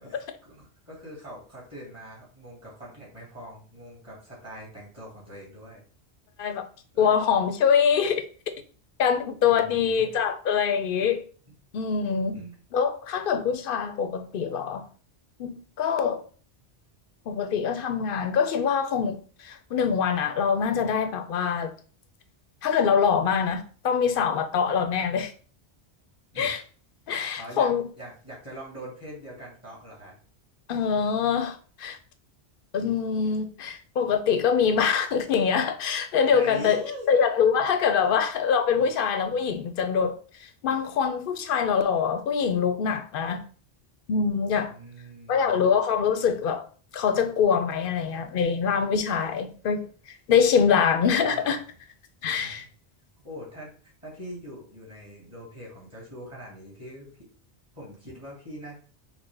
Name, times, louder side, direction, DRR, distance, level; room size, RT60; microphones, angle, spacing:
voice 1, 0.0-5.8 6.9-7.1 9.4-10.1 12.3-12.6 26.3-26.5 27.4-27.7 28.0-30.2 36.3-37.1 37.6-37.7 38.0-38.1 38.7-38.9 44.7-45.6 50.7-51.5 52.4-52.6 53.2-53.7 54.0-57.3 57.7-58.8, equal, 30° right, 2.2 m, -43 dB
voice 2, 7.0-8.2 9.0-11.2 11.7-12.4 12.7-14.9 15.4-16.2 17.3-21.7 22.6-25.3 26.4-26.6 27.1-27.9 30.7-32.0 32.7-36.8 37.1-40.2 40.6-43.4 44.1-44.7 45.3-46.6 46.9-49.9 50.3-51.6 52.2-52.7, left 6 dB, 60° left, 0.7 m, -24 dB
5.0 x 2.1 x 3.5 m
omnidirectional pair, 1.1 m